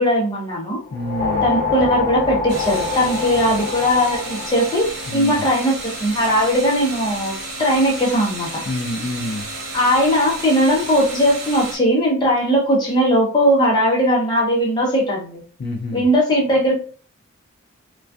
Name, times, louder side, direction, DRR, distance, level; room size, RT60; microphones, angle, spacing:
voice 1, 0.0-0.8 1.4-8.6 9.7-15.4 15.9-16.7, equal, 20° left, -3 dB, 0.7 m, -19 dB
voice 2, 0.9-1.5 5.1-5.5 8.6-9.5 15.6-16.0, left 1 dB, 50° left, 2 dB, 0.3 m, -27 dB
sound 1, 0.9-5.5, left 3 dB, 35° right, 1.1 m, -25 dB
sound 2, 2.5-11.8, right 2 dB, 50° right, 0.7 m, -32 dB
2.4 x 2.3 x 2.3 m, 0.42 s
head